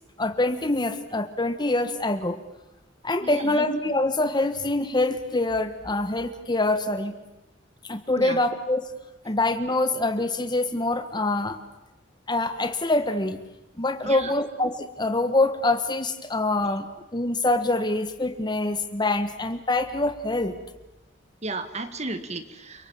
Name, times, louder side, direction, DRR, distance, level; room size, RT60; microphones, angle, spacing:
voice 1, 0.2-2.4 3.0-7.1 7.8-8.9 9.2-11.6 12.3-13.4 13.8-16.9 17.1-20.6, left 2 dB, 25° left, 10 dB, 1.5 m, -25 dB
voice 2, 3.2-3.6 8.2-8.4 14.0-14.3 16.6-16.7 21.4-22.9, right 3 dB, 35° right, 10 dB, 1.9 m, -34 dB
30.0 x 24.5 x 7.3 m, 0.94 s
head